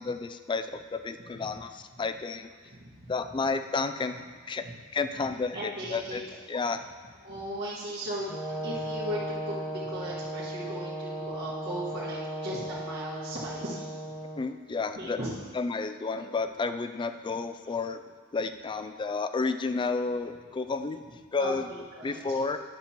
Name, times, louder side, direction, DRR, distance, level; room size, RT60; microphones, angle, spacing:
voice 1, 0.0-2.5 3.1-4.2 4.5-4.6 4.9-6.2 6.5-6.8 14.4-15.2 15.5-18.0 18.3-21.0 21.3-21.7 22.0-22.6, left 4 dB, 25° left, 9 dB, 0.3 m, -31 dB
voice 2, 2.7-3.1 4.6-4.7 5.2-5.3 5.5-6.2 7.2-14.0 15.0-15.3 21.4-22.2, equal, 55° right, -10 dB, 1.6 m, -37 dB
Brass instrument, 8.3-14.4, right 1 dB, ahead, 1.2 m, -36 dB
10.5 x 6.9 x 2.9 m, 1.5 s
head